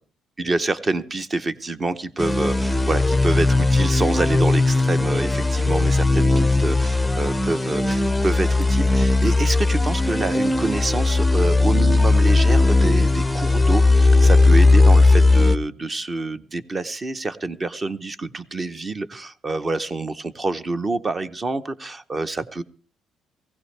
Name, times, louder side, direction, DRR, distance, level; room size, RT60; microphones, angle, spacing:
voice 1, 0.4-22.6, right 2 dB, 25° right, 11 dB, 0.8 m, -27 dB
sound 1, 2.2-15.6, left 2 dB, 5° left, 0.6 m, -17 dB
19.0 x 16.0 x 3.3 m, 0.40 s
cardioid pair, 125°, 0 cm